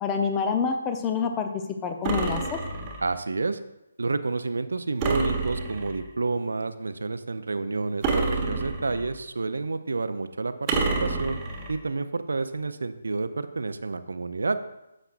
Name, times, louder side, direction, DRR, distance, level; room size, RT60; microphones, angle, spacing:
voice 1, 0.0-2.6, left 6 dB, 15° left, 6 dB, 0.7 m, -27 dB
sound 1, 2.0-3.1 5.0-6.1 8.0-9.2 10.7-11.7, right 3 dB, 20° right, 1.1 m, -28 dB
voice 2, 3.0-3.6 4.0-11.4 11.7-14.6, right 3 dB, 65° right, 11 dB, 0.5 m, -29 dB
10.0 x 7.7 x 2.5 m, 0.91 s
figure-of-eight pair, 140°, 0 cm